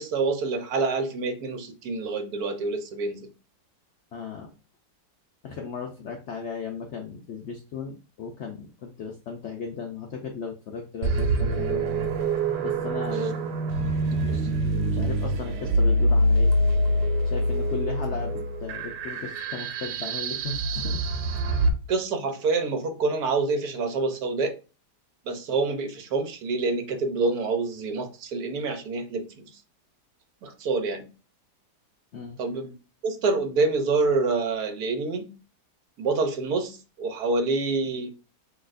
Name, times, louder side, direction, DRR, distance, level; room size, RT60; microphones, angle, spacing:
voice 1, 0.0-3.3 13.1-13.3 14.3-14.5 21.9-24.5 25.3-29.5 30.4-31.1 32.4-32.7 33.0-35.4 36.0-38.1, right 3 dB, 65° right, 5 dB, 1.2 m, -27 dB
voice 2, 4.1-4.5 5.4-11.9 12.6-13.4 14.9-16.6 17.2-21.0 32.1-32.4, left 5 dB, 70° left, 2 dB, 0.6 m, -36 dB
sound 1, 11.0-21.7, right 1 dB, 85° right, 1.3 m, -25 dB
6.3 x 3.0 x 2.5 m, 0.33 s
omnidirectional pair, 1.8 m